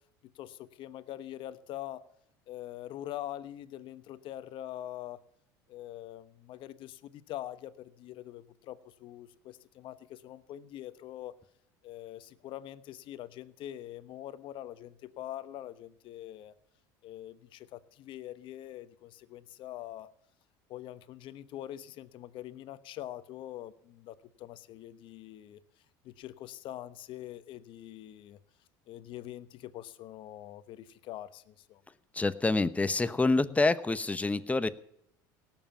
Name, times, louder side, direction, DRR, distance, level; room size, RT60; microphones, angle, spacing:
voice 1, 0.3-2.0 2.5-5.2 5.7-11.3 11.8-16.5 17.0-20.1 20.7-25.6 26.0-28.4 28.9-31.8, left 13 dB, 55° left, 14 dB, 1.0 m, -44 dB
voice 2, 32.2-34.7, left 3 dB, 15° left, 13 dB, 0.9 m, -27 dB
17.5 x 7.4 x 7.2 m, 0.73 s
hypercardioid pair, 85°, 10 cm